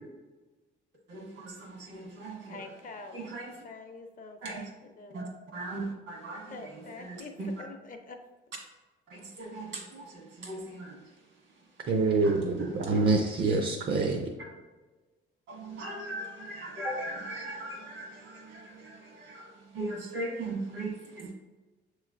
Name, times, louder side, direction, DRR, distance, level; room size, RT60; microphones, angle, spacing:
voice 1, 1.1-2.8 3.1-3.5 4.4-4.7 5.1-5.2 5.5-7.6 9.1-11.0 12.2-13.0 15.5-21.3, right 2 dB, 75° right, -1 dB, 1.5 m, -39 dB
voice 2, 2.5-3.2 3.6-4.7 5.0-5.3 6.5-7.3 7.6-8.2, left 3 dB, 40° left, 5 dB, 0.6 m, -45 dB
voice 3, 11.9-14.2, right 3 dB, 50° right, 3 dB, 0.6 m, -26 dB
6.8 x 3.1 x 2.5 m, 1.2 s
cardioid pair, 90°, 20 cm